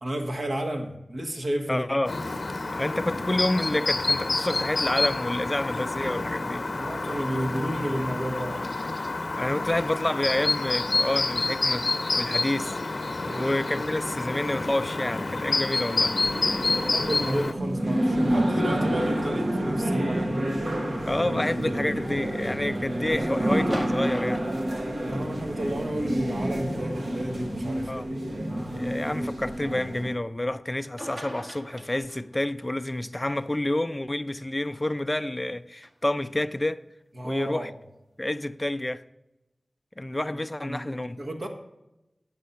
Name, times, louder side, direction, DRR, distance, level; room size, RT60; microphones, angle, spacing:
voice 1, 0.0-1.9 6.7-8.7 13.3-13.9 16.6-20.5 25.0-28.4 37.2-37.7 40.6-40.9 41.2-41.5, equal, 65° right, 1.7 m, -32 dB
voice 2, 1.7-2.2 2.8-6.7 9.4-11.9 12.1-12.8 13.3-16.2 21.1-24.5 27.9-28.1 28.7-36.8 37.2-37.7 38.2-39.0 40.0-41.2, left 1 dB, 25° left, 0.5 m, -29 dB
Chirp tweet, 2.1-17.5, left 3 dB, 60° left, 0.8 m, -28 dB
sound 1, 16.2-30.1, right 1 dB, 85° right, 1.3 m, -28 dB
sound 2, 23.7-25.5 26.8-26.9 27.8-27.9 30.7-30.8 31.0-32.4 35.8-35.9, right 1 dB, 45° right, 1.4 m, -40 dB
9.2 x 7.4 x 5.6 m
wide cardioid pair, 55°, 0 cm